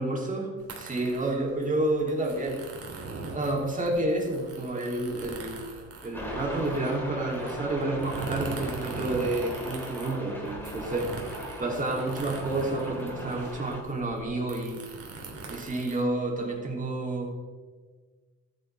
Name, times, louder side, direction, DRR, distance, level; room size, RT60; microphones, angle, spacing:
voice 1, 0.0-0.5 0.8-2.6 3.3-5.8 6.0-11.1 11.6-14.8 15.5-17.3, right 2 dB, 25° right, 0 dB, 2.9 m, -30 dB
sound 1, 0.6-16.7, right 3 dB, 50° right, 2.8 m, -41 dB
sound 2, 6.1-13.8, equal, 5° left, 3.4 m, -39 dB
13.5 x 9.6 x 3.4 m, 1.4 s
cardioid pair, 90°, 30 cm